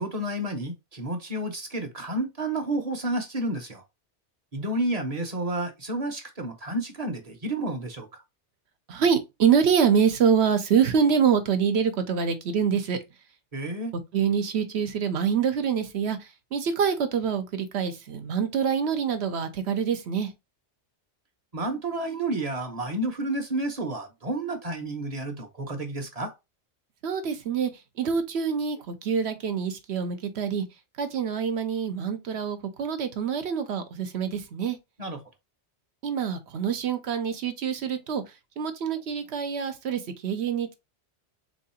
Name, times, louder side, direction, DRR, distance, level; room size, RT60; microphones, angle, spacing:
voice 1, 0.0-3.8 4.5-8.1 13.5-13.9 21.5-26.3 35.0-35.2, right 1 dB, 35° right, 0.9 m, -30 dB
voice 2, 8.9-13.0 14.1-16.2 16.5-20.3 27.0-27.7 28.0-30.6 31.0-34.8 36.0-38.2 38.6-40.7, right 7 dB, 70° right, 1.0 m, -25 dB
3.8 x 3.0 x 4.3 m
omnidirectional pair, 1.2 m